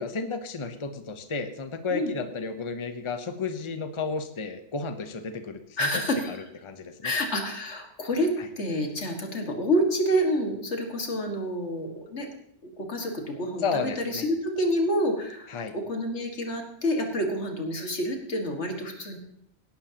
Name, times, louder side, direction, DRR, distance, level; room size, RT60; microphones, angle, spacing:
voice 1, 0.0-5.9 6.3-6.4 6.6-7.1 8.4-8.5 13.6-14.3 15.5-15.8, left 4 dB, 30° left, 8 dB, 0.8 m, -32 dB
voice 2, 5.8-6.4 7.0-8.3 8.6-12.3 12.6-19.2, equal, 80° left, 3 dB, 2.1 m, -28 dB
17.5 x 11.5 x 2.9 m, 0.70 s
omnidirectional pair, 1.2 m